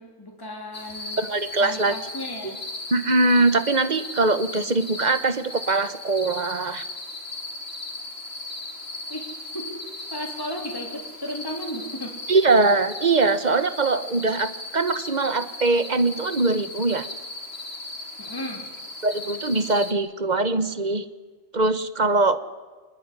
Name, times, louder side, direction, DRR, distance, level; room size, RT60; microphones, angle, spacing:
voice 1, 0.0-1.2 1.6-2.6 9.1-9.3 9.5-9.8 10.1-12.2 18.2-18.6, equal, 20° left, 1 dB, 3.1 m, -34 dB
sound 1, 0.7-19.9, left 2 dB, 60° left, 3.5 m, -37 dB
voice 2, 1.2-2.0 2.9-6.9 12.3-17.1 19.0-21.0 21.5-22.4, right 3 dB, 40° right, 12 dB, 1.4 m, -22 dB
25.5 x 20.5 x 9.9 m, 1.4 s
omnidirectional pair, 1.2 m